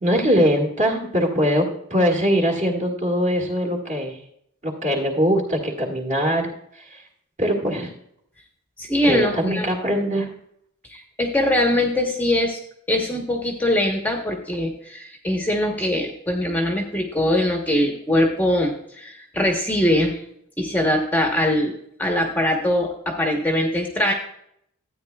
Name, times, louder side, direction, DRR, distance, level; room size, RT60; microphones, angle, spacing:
voice 1, 0.0-4.2 4.6-6.5 6.8-7.0 7.4-7.9 9.0-10.3, equal, 35° right, 1 dB, 1.9 m, -22 dB
voice 2, 8.8-9.7 10.9-12.6 12.9-20.2 20.6-21.7 22.0-24.1, left 1 dB, 10° left, 1 dB, 1.0 m, -22 dB
13.0 x 9.0 x 2.3 m, 0.71 s
head